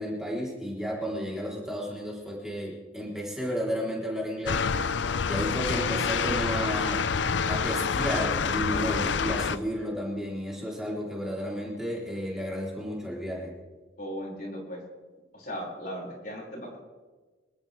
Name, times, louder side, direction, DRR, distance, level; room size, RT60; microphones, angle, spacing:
voice 1, 0.0-4.6 5.3-7.0 7.4-13.5, equal, 5° right, -4 dB, 3.7 m, -32 dB
sound 1, 4.5-9.6, left 5 dB, 75° left, 0.6 m, -27 dB
voice 2, 14.0-14.8 15.3-16.8, equal, 50° left, -4 dB, 6.0 m, -37 dB
26.0 x 13.0 x 3.5 m, 1.3 s
head